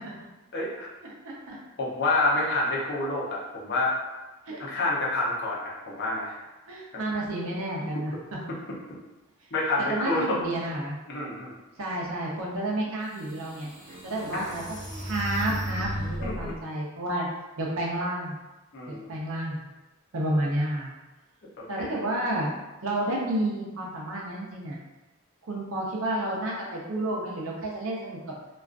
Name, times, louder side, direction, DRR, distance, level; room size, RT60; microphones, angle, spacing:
voice 1, 0.5-0.9 1.8-4.0 4.6-6.4 7.1-7.2 9.5-10.4 11.1-11.6 16.2-16.6 18.7-19.1 21.6-22.1, left 2 dB, 50° left, -4 dB, 0.6 m, -28 dB
voice 2, 1.2-1.6 4.5-4.6 6.7-8.1 9.9-11.0 11.8-13.7 14.0-17.3 17.6-18.4 18.9-19.6 20.1-21.0 21.7-22.5 22.8-24.8 25.5-28.2, right 1 dB, 65° right, -3 dB, 0.6 m, -30 dB
sound 1, 12.8-12.9 13.4-16.6, equal, 30° right, 0.7 m, -35 dB
2.4 x 2.3 x 2.4 m, 1.1 s
head